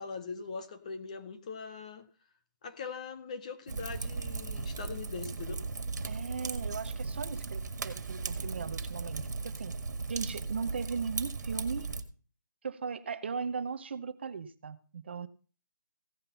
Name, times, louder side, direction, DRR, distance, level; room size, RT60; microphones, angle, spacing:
voice 1, 0.0-2.1 2.6-5.6, left 5 dB, 20° left, 0.6 m, -41 dB
Fire, 3.7-12.0, right 4 dB, 60° right, 1.8 m, -37 dB
voice 2, 6.1-9.8 10.1-11.9 12.6-15.3, right 5 dB, 35° right, 0.7 m, -38 dB
16.0 x 5.7 x 5.6 m
hypercardioid pair, 175°, 10 cm